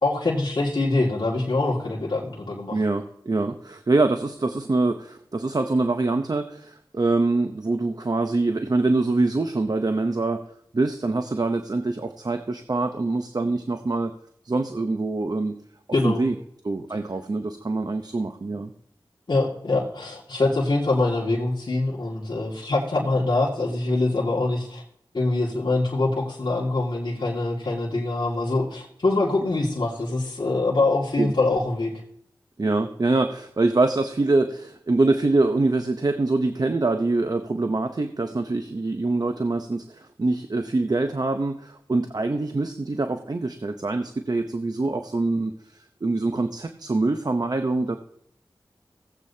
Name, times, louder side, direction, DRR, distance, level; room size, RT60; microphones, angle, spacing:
voice 1, 0.0-2.8 15.9-16.2 19.3-24.8 25.1-31.9, left 2 dB, 65° left, -6 dB, 2.2 m, -24 dB
voice 2, 2.7-10.4 10.7-14.1 14.4-15.6 16.0-16.3 16.6-18.7 31.2-31.3 32.6-48.0, right 2 dB, 50° right, 7 dB, 0.7 m, -24 dB
17.0 x 8.2 x 2.8 m, 0.70 s
cardioid pair, 40°, 9 cm